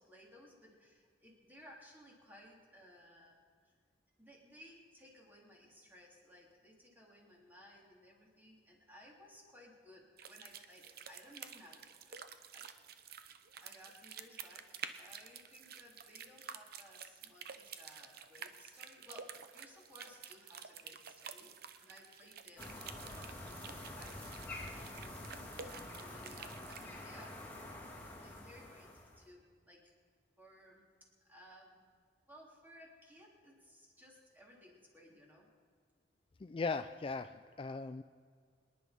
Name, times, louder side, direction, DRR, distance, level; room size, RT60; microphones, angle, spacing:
voice 1, 0.0-3.7 4.2-12.2 12.5-12.7 13.6-21.5 21.8-27.6 28.0-29.9 30.4-30.9 31.2-31.8 32.3-35.5, equal, 10° right, -2 dB, 3.4 m, -59 dB
sound 1, 10.2-26.9, right 7 dB, 60° right, 0.9 m, -51 dB
sound 2, 22.6-29.3, left 1 dB, 10° left, 2.8 m, -48 dB
voice 2, 36.4-38.0, left 4 dB, 30° left, 10 dB, 0.4 m, -38 dB
25.5 x 10.5 x 5.3 m, 2.1 s
head